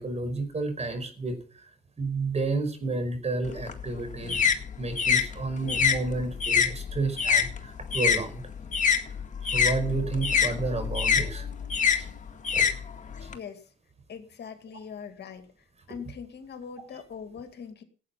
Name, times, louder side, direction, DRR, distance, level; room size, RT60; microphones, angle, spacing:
voice 1, 0.0-1.4 2.0-8.4 9.5-12.2 12.5-12.7 13.2-13.3, right 3 dB, 35° right, 8 dB, 5.3 m, -31 dB
sound 1, 3.4-8.2 8.5-13.3, left 7 dB, 40° left, 1.9 m, -25 dB
voice 2, 14.1-15.5 15.9-17.8, left 6 dB, 60° left, 7 dB, 2.3 m, -41 dB
17.0 x 8.4 x 5.8 m, 0.41 s
cardioid pair, 90°, 20 cm